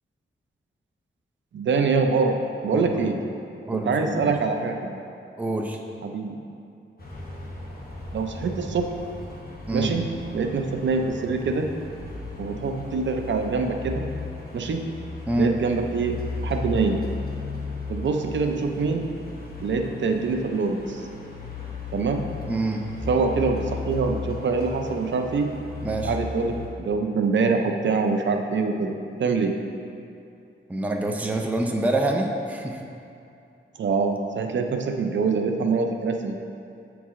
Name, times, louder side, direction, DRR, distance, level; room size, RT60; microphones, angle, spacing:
voice 1, 1.5-2.4 2.6-3.2 3.7-5.0 6.0-6.4 8.1-8.9 9.7-11.7 12.4-14.1 14.5-14.8 15.4-16.1 16.4-17.0 17.9-19.1 19.6-21.0 21.9-22.2 23.1-25.5 26.0-29.6 33.8-36.4, right 4 dB, 65° right, 4 dB, 0.5 m, -25 dB
voice 2, 3.7-4.3 5.4-5.8 9.7-9.9 15.3-15.5 22.5-22.9 25.8-26.1 30.7-32.8, right 2 dB, 5° right, 1 dB, 0.4 m, -26 dB
sound 1, 7.0-26.7, left 3 dB, 45° left, 1.0 m, -36 dB
8.1 x 4.7 x 3.6 m, 2.6 s
wide cardioid pair, 155°, 21 cm